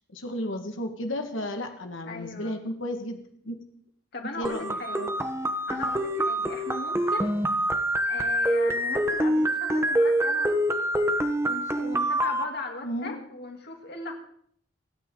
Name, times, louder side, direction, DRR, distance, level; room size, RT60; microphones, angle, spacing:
voice 1, 0.1-3.2 3.5-3.6 4.4-5.1 12.8-13.2, left 1 dB, 90° left, 5 dB, 1.8 m, -33 dB
voice 2, 2.0-2.5 4.1-5.0 5.7-7.3 8.0-10.9 11.4-14.1, left 3 dB, 55° left, 2 dB, 3.0 m, -38 dB
sound 1, 4.4-12.4, right 1 dB, 15° right, 1.2 m, -26 dB
28.0 x 9.8 x 3.9 m, 0.65 s
head